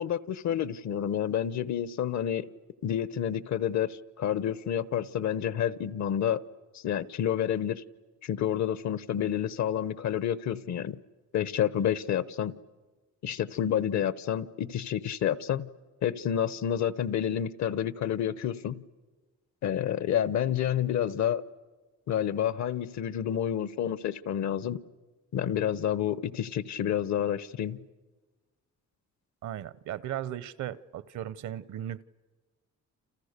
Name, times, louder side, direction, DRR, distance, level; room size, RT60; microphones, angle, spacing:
voice 1, 0.0-2.5 2.8-6.4 6.7-7.8 8.2-11.0 11.3-12.6 13.2-15.7 16.0-18.8 19.6-21.4 22.1-24.8 25.3-27.8, left 10 dB, 65° left, 17 dB, 1.0 m, -29 dB
voice 2, 29.4-32.0, right 11 dB, 70° right, 19 dB, 0.8 m, -36 dB
29.5 x 28.5 x 6.7 m, 1.3 s
cardioid pair, 90°, 30 cm